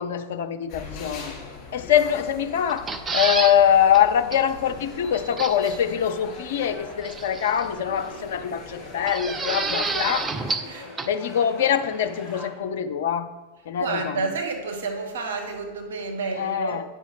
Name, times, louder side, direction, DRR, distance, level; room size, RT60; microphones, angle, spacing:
voice 1, 0.0-1.3 1.7-10.3 11.0-13.3 13.7-14.2 16.4-16.8, left 9 dB, 55° left, 9 dB, 0.6 m, -23 dB
sound 1, 0.7-10.6, left 4 dB, 40° left, 2.4 m, -41 dB
sound 2, 2.7-3.6 3.9-4.0 4.3-4.4 5.4-5.8 7.0-7.7 9.1-10.7 11.0-11.1, right 4 dB, 15° right, 0.5 m, -28 dB
sound 3, 4.6-12.5, left 2 dB, ahead, 2.9 m, -43 dB
voice 2, 13.8-16.8, right 4 dB, 60° right, 2 dB, 1.4 m, -30 dB
9.2 x 5.6 x 4.6 m, 1.3 s
figure-of-eight pair, 90°, 0 cm